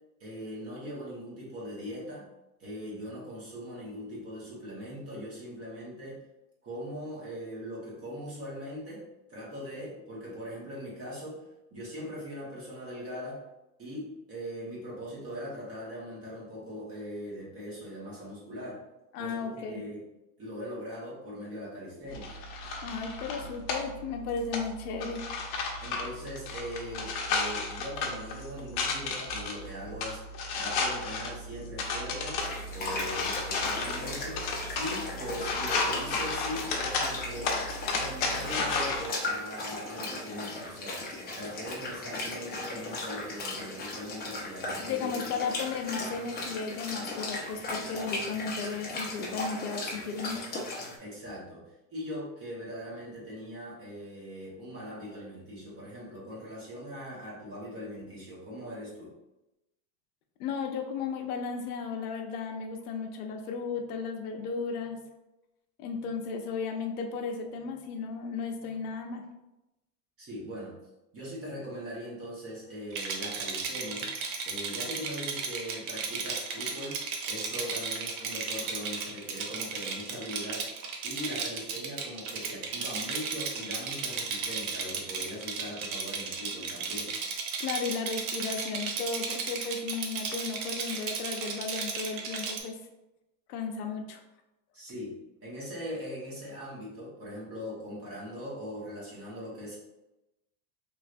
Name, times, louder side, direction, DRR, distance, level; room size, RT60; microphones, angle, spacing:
voice 1, 0.2-2.3 2.6-6.2 6.6-9.0 9.3-13.4 13.8-18.8 19.2-20.0 20.4-22.3 25.8-30.2 30.5-32.4 32.7-34.4 34.8-37.6 37.9-41.0 41.3-45.4 51.0-51.6 51.9-59.1 70.2-70.7 71.1-74.1 74.4-77.0 77.3-80.7 81.0-87.1 94.7-95.1 95.4-99.8, equal, 30° right, -6 dB, 1.3 m, -40 dB
voice 2, 19.1-19.7 22.8-25.2 28.6-28.7 44.8-50.5 60.4-65.0 65.8-69.2 87.6-92.8 93.5-94.2, left 5 dB, 85° left, 4 dB, 0.7 m, -35 dB
sound 1, 22.1-39.1, left 3 dB, 55° left, 0.8 m, -33 dB
sound 2, 32.4-51.0, left 2 dB, 20° left, 0.7 m, -37 dB
Rattle, 72.9-92.6, right 5 dB, 70° right, 0.8 m, -34 dB
3.2 x 3.0 x 2.5 m, 0.95 s
supercardioid pair, 125°, 44 cm